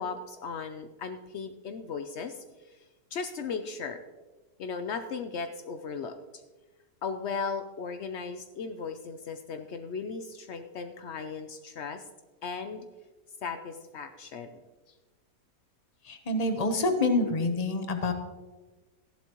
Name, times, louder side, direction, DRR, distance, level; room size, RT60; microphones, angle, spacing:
voice 1, 0.0-2.8 3.1-4.0 4.6-6.2 7.0-12.0 12.4-12.9 13.4-14.5, left 5 dB, 85° left, 8 dB, 0.6 m, -36 dB
voice 2, 16.0-18.1, left 2 dB, 30° left, 6 dB, 0.7 m, -27 dB
14.0 x 11.5 x 3.0 m, 1.2 s
omnidirectional pair, 1.9 m